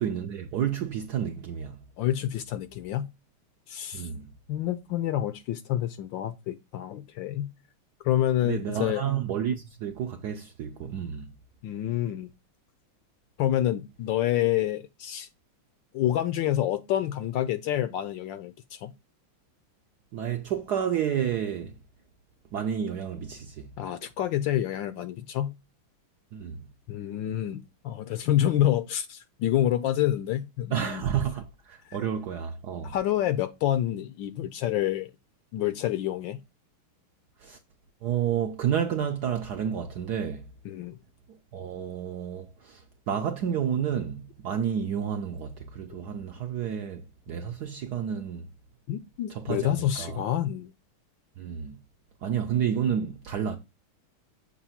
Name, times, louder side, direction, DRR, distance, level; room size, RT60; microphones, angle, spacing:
voice 1, 0.0-1.8 3.9-4.3 8.4-11.3 20.1-21.8 22.5-23.7 26.3-26.6 30.7-32.9 37.4-37.6 38.0-40.4 41.3-48.4 49.3-50.2 51.4-51.8 52.2-53.6, right 8 dB, 70° right, 0.9 m, -30 dB
voice 2, 2.0-3.1 3.7-4.1 4.5-7.5 8.0-9.0 11.6-12.3 13.4-15.3 15.9-18.9 23.8-25.5 26.9-31.0 31.9-32.0 32.8-35.1 35.5-36.4 40.6-41.0 48.9-50.7, left 12 dB, 75° left, 1.1 m, -28 dB
6.9 x 2.6 x 5.6 m
omnidirectional pair, 2.4 m